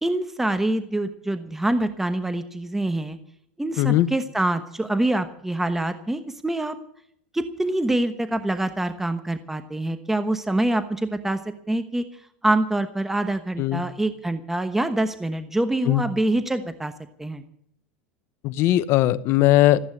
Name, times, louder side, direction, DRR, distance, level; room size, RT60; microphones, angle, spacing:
voice 1, 0.0-3.2 3.6-6.8 7.3-11.4 11.7-12.0 12.4-16.9 17.2-17.4, right 1 dB, 5° right, 10 dB, 1.1 m, -25 dB
voice 2, 3.8-4.1 13.6-13.8 15.9-16.0 18.4-19.8, left 14 dB, 55° left, 16 dB, 0.9 m, -19 dB
15.0 x 8.7 x 9.8 m, 0.69 s
supercardioid pair, 115°, 5 cm